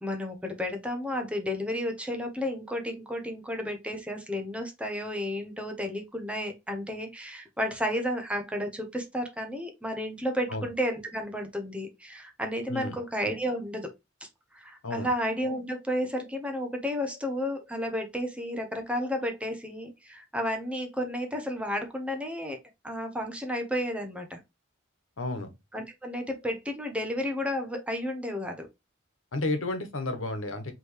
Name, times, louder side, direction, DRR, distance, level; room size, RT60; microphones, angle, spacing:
voice 1, 0.0-13.9 14.2-14.3 14.5-22.6 22.8-24.4 25.7-28.7, equal, 5° right, 0.9 m, -32 dB
voice 2, 25.2-25.5 29.3-30.7, left 2 dB, 85° left, 1.2 m, -31 dB
5.0 x 3.2 x 3.1 m
head